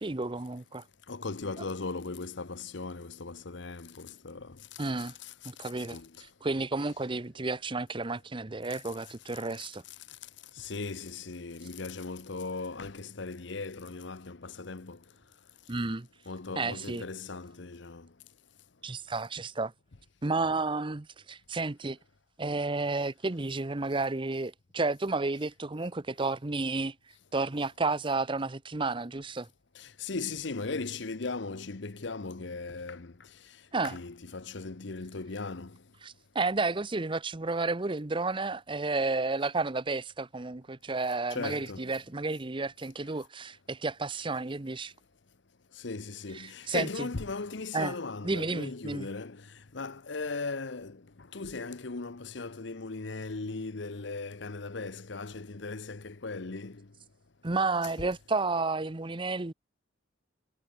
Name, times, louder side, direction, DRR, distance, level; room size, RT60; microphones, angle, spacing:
voice 1, 0.0-0.8 4.8-5.1 5.4-6.0 6.4-9.8 15.7-16.1 16.6-17.0 18.8-19.7 20.2-22.0 22.4-26.9 27.3-29.5 33.7-34.0 36.0-44.9 46.3-47.1 47.7-47.9 48.2-49.1 57.4-59.5, right 3 dB, 25° right, 0.8 m, -31 dB
voice 2, 1.1-4.6 5.2-5.3 5.6-6.1 10.6-15.0 16.3-18.1 29.7-33.1 33.8-35.8 41.3-41.9 45.8-56.9, left 3 dB, 65° left, 0.9 m, -38 dB
head